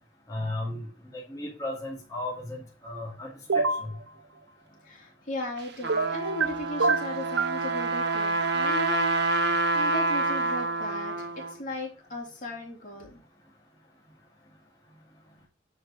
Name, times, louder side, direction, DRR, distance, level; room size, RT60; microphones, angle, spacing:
voice 1, 0.3-3.9, left 1 dB, 20° left, -5 dB, 2.5 m, -35 dB
sound 1, 3.5-3.9 5.9-6.5 6.8-7.6, right 4 dB, 90° right, 0.8 m, -25 dB
voice 2, 4.8-13.2, left 1 dB, 40° left, -2 dB, 3.6 m, -37 dB
Trumpet, 5.6-11.5, right 2 dB, 55° right, 1.7 m, -27 dB
10.0 x 5.5 x 4.9 m, 0.38 s
head